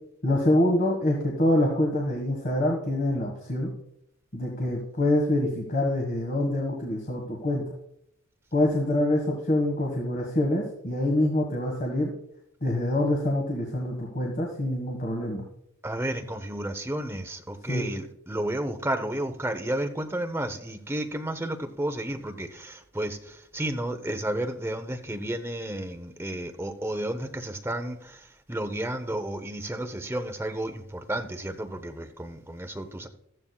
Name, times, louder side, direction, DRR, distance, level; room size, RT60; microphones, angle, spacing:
voice 1, 0.2-3.7 4.3-7.6 8.5-12.1 12.6-15.5 17.7-17.8, left 1 dB, 40° left, 1.6 m, -25 dB
voice 2, 15.8-33.1, right 1 dB, 10° right, 0.8 m, -32 dB
14.0 x 11.0 x 2.3 m
head